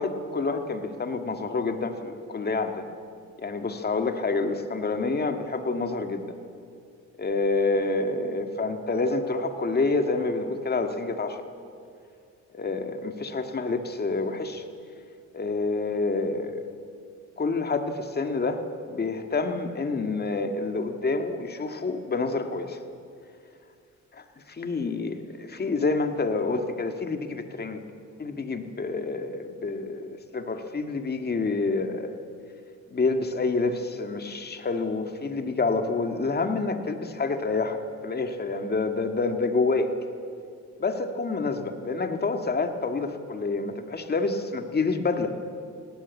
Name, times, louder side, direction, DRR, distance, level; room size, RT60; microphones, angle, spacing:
voice 1, 0.0-2.9 3.4-6.4 7.2-11.4 12.5-14.6 15.3-16.6 17.4-22.8 24.1-27.8 28.2-32.1 32.9-39.9 40.8-45.3, left 3 dB, 35° left, 7 dB, 1.9 m, -28 dB
19.5 x 17.0 x 8.4 m, 2.3 s
cardioid pair, 90°, 30 cm